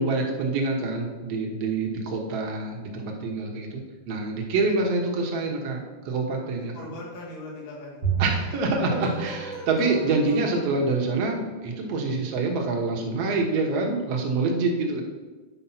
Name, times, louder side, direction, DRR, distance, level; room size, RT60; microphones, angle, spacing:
voice 1, 0.0-6.7 8.2-15.0, right 3 dB, 60° right, 0 dB, 2.2 m, -26 dB
voice 2, 6.7-8.3 14.5-15.0, left 2 dB, 70° left, -4 dB, 3.4 m, -41 dB
Bowed string instrument, 8.0-10.6, right 7 dB, 40° right, 0.8 m, -32 dB
sound 1, 8.8-12.1, right 1 dB, 10° left, 1.2 m, -41 dB
9.7 x 5.1 x 5.7 m, 1.3 s
omnidirectional pair, 3.3 m